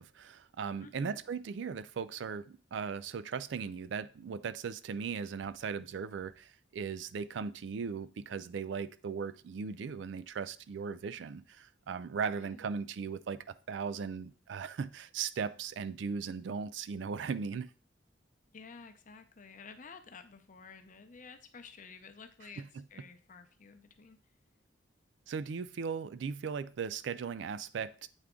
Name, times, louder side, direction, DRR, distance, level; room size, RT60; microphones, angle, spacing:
voice 1, 0.0-17.7 22.6-22.7 25.3-28.1, right 6 dB, 65° right, 0.4 m, -38 dB
voice 2, 0.8-1.2 12.4-12.7 18.5-22.6 22.9-24.2, left 5 dB, 45° left, 0.7 m, -52 dB
8.0 x 3.5 x 3.7 m
head